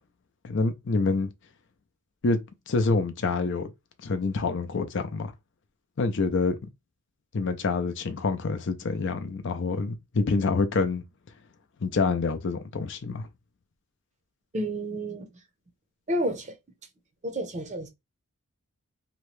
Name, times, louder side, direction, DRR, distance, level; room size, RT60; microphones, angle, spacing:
voice 1, 0.4-1.3 2.2-2.4 2.7-3.7 4.0-5.3 6.0-6.6 7.3-11.0 11.8-13.3, left 3 dB, 55° left, 0.5 m, -26 dB
voice 2, 14.5-15.3 16.1-16.6 17.2-17.9, right 1 dB, 30° right, 0.6 m, -30 dB
2.9 x 2.1 x 3.1 m
head